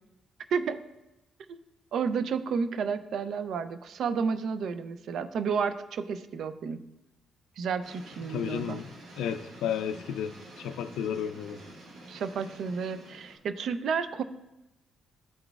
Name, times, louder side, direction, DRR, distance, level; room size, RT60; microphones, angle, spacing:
voice 1, 1.9-6.8 7.6-8.8 12.1-14.2, right 6 dB, 70° right, 12 dB, 0.4 m, -31 dB
sound 1, 7.8-13.4, right 1 dB, 90° right, 1.1 m, -49 dB
voice 2, 8.3-11.6, left 8 dB, 85° left, 11 dB, 0.3 m, -33 dB
10.5 x 3.9 x 2.3 m, 0.97 s
cardioid pair, 90°, 0 cm